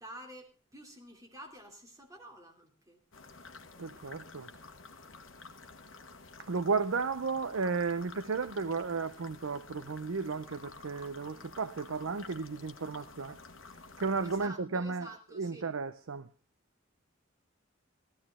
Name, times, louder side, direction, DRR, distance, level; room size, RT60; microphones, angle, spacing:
voice 1, 0.0-3.0 14.2-15.7, right 1 dB, 15° right, 2.9 m, -49 dB
sound 1, 3.1-14.5, left 3 dB, 65° left, 1.3 m, -51 dB
voice 2, 3.8-4.5 6.4-13.4 14.0-15.1 15.3-16.3, right 4 dB, 85° right, 0.7 m, -34 dB
16.5 x 14.0 x 3.6 m
head